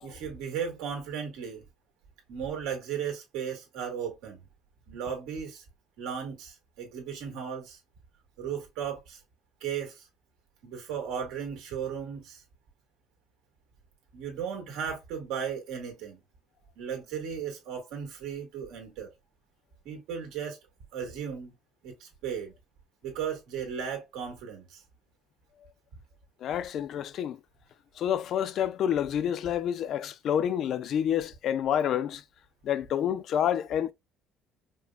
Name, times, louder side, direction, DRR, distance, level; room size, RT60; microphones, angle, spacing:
voice 1, 0.0-1.7 2.3-4.4 4.9-5.6 6.0-7.8 8.4-9.2 9.6-10.1 10.6-12.4 14.1-16.2 16.8-19.1 19.8-20.6 20.9-21.5 21.8-22.5 23.0-24.8, right 7 dB, 85° right, 1.6 m, -36 dB
voice 2, 26.4-27.4 28.0-32.2 32.6-33.9, left 9 dB, 55° left, 0.3 m, -28 dB
5.1 x 2.1 x 2.3 m
cardioid pair, 135°, 0 cm